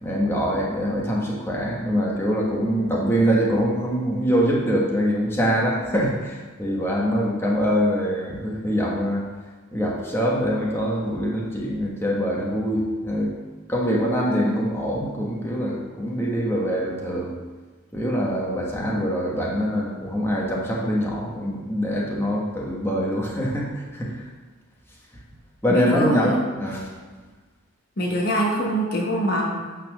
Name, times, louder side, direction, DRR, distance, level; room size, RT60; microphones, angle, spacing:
voice 1, 0.0-9.3 9.7-13.3 13.7-17.3 17.9-24.3 25.6-26.9, equal, 10° left, -3 dB, 1.3 m, -24 dB
voice 2, 25.7-26.3 28.0-29.6, equal, 45° left, -2 dB, 1.2 m, -24 dB
9.0 x 4.4 x 6.2 m, 1.3 s
head